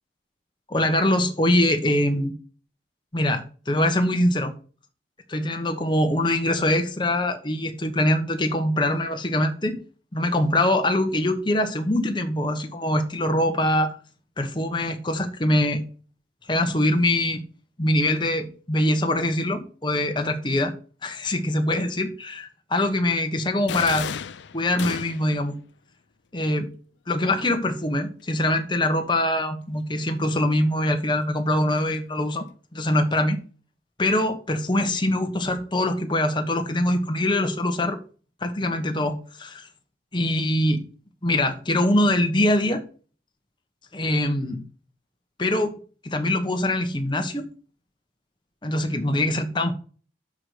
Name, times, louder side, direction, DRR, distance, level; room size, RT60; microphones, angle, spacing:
voice 1, 0.7-2.3 3.1-4.5 5.3-9.8 10.1-13.9 14.4-15.8 16.5-17.4 17.8-20.7 21.0-24.1 24.5-25.5 26.3-26.7 27.1-32.5 32.7-33.4 34.0-38.0 38.4-39.7 40.1-40.8 41.2-42.8 43.9-44.6 45.4-45.8 46.0-47.5 48.6-49.7, left 1 dB, 25° left, 1.1 m, -23 dB
sound 1, 23.7-25.4, left 7 dB, 75° left, 0.5 m, -32 dB
6.3 x 4.9 x 6.6 m
head